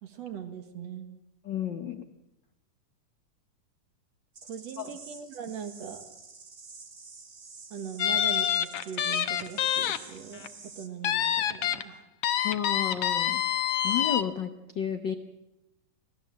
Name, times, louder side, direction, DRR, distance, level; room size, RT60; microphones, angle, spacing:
voice 1, 0.0-1.1 4.5-6.1 7.7-12.0, right 7 dB, 60° right, 7 dB, 2.7 m, -40 dB
voice 2, 1.4-2.1 4.8-4.9 12.4-13.4 13.8-15.1, left 9 dB, 85° left, 8 dB, 1.0 m, -32 dB
sound 1, 4.3-10.9, right 4 dB, 35° right, 1.5 m, -49 dB
sound 2, 8.0-10.0 10.3-10.5 11.0-11.8 12.2-14.2, left 10 dB, 65° left, 1.6 m, -27 dB
26.0 x 17.5 x 7.6 m, 0.89 s
omnidirectional pair, 3.6 m